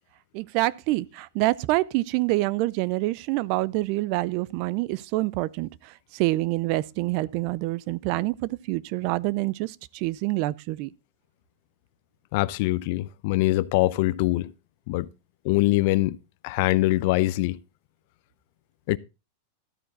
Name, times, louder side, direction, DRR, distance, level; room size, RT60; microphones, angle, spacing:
voice 1, 0.3-5.7 6.1-10.9, right 19 dB, 45° right, 0.5 m, -26 dB
voice 2, 12.3-14.5 14.9-15.1 15.4-16.2 16.4-17.6 18.9-19.0, left 18 dB, 50° left, 0.6 m, -23 dB
13.0 x 8.8 x 3.9 m
supercardioid pair, 155°, 0 cm